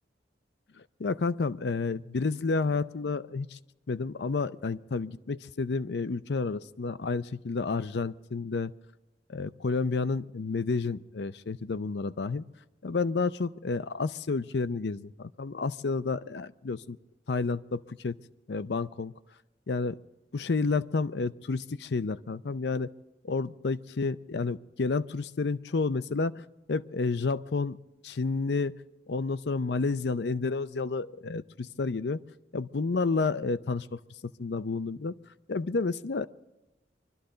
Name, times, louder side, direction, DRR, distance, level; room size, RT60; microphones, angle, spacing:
voice 1, 0.8-3.6 3.9-8.7 9.3-12.4 12.8-17.0 17.3-18.2 18.5-19.1 19.7-20.0 20.3-22.9 23.2-27.8 28.0-28.7 29.1-32.2 32.5-34.0 34.4-35.1 35.5-36.3, left 4 dB, 70° left, 14 dB, 0.5 m, -30 dB
24.5 x 13.0 x 3.9 m, 1.0 s
head